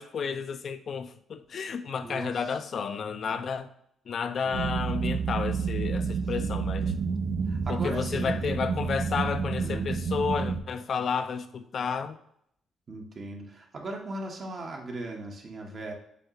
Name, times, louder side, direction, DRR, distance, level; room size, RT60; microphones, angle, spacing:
voice 1, 0.0-3.7 4.1-6.9 7.7-12.2, left 6 dB, 55° left, 0.4 m, -31 dB
voice 2, 2.0-2.3 3.3-3.4 4.5-4.7 6.4-6.6 7.5-8.5 9.6-9.9 12.9-15.9, right 2 dB, 45° right, 0.9 m, -38 dB
sound 1, 4.5-10.6, right 5 dB, 70° right, 0.5 m, -29 dB
6.3 x 2.3 x 2.9 m
cardioid pair, 90°, 0 cm